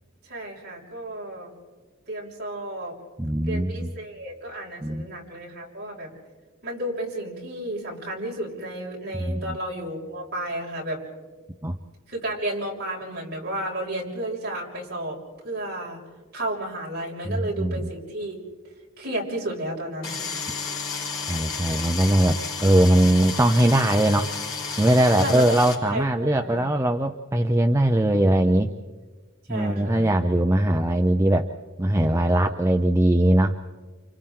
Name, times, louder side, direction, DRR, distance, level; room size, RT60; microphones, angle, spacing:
voice 1, 0.2-1.5 2.1-3.0 3.4-6.1 6.6-11.0 12.1-16.0 16.3-20.2 25.2-25.6 25.8-26.6 29.5-30.1, right 1 dB, 45° right, -3 dB, 6.1 m, -32 dB
voice 2, 3.2-3.9 4.8-5.1 9.3-9.6 11.6-11.8 17.2-17.8 21.3-24.3 24.8-28.7 29.5-31.5 31.8-33.6, right 1 dB, 15° right, 4 dB, 0.6 m, -21 dB
sound 1, 20.0-25.7, left 5 dB, 65° left, 4.4 m, -32 dB
29.5 x 29.5 x 3.8 m, 1.3 s
head